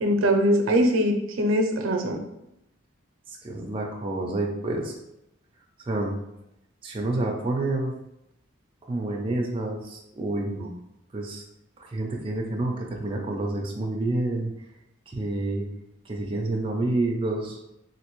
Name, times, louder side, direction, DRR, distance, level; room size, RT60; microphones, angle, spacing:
voice 1, 0.0-2.2, equal, 90° right, 4 dB, 0.5 m, -22 dB
voice 2, 3.4-4.9 5.8-6.2 6.8-7.9 8.9-10.8 11.1-11.4 11.9-14.5 15.1-15.6 16.1-17.6, right 2 dB, 25° right, 0 dB, 0.4 m, -28 dB
3.3 x 2.6 x 3.0 m, 0.85 s
head